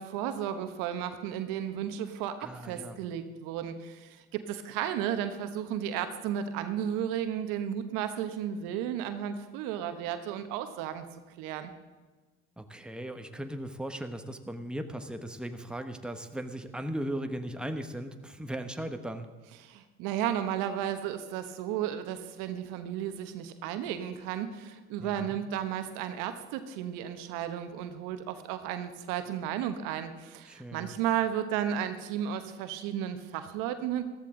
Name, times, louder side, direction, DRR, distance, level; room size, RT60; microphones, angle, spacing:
voice 1, 0.0-2.3 2.6-11.0 11.4-11.7 19.6-34.0, right 10 dB, 75° right, 9 dB, 1.1 m, -33 dB
voice 2, 2.4-3.0 12.6-19.3 25.0-25.4 30.5-30.9, right 1 dB, 5° right, 7 dB, 1.2 m, -37 dB
14.5 x 13.5 x 3.8 m, 1.3 s
hypercardioid pair, 60°, 33 cm